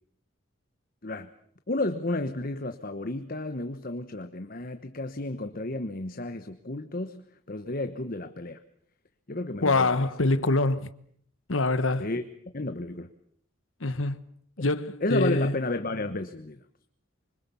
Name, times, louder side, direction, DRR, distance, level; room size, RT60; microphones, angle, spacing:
voice 1, 1.7-7.2 7.5-8.6 9.3-10.1 12.0-12.2 12.5-13.1 15.0-16.6, left 2 dB, 45° left, 1.1 m, -32 dB
voice 2, 9.6-10.9 11.5-12.1 13.8-14.2 14.6-15.5, left 2 dB, 70° left, 1.3 m, -25 dB
26.5 x 24.5 x 7.0 m
head